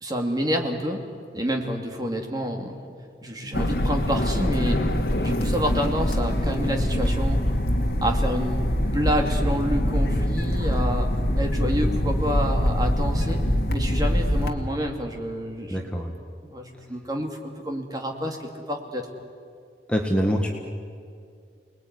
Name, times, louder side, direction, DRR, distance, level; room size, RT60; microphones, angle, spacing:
voice 1, 0.0-1.0 1.3-2.9 3.2-4.8 5.2-7.4 8.0-8.7 8.9-11.1 11.4-13.4 13.7-15.8 16.4-19.2, equal, 20° right, 3 dB, 2.5 m, -28 dB
sound 1, 3.5-14.5, left 1 dB, 55° left, 2.3 m, -24 dB
voice 2, 15.7-16.1 19.9-20.5, equal, 5° left, 1 dB, 1.7 m, -24 dB
29.0 x 20.0 x 9.7 m, 2.3 s
head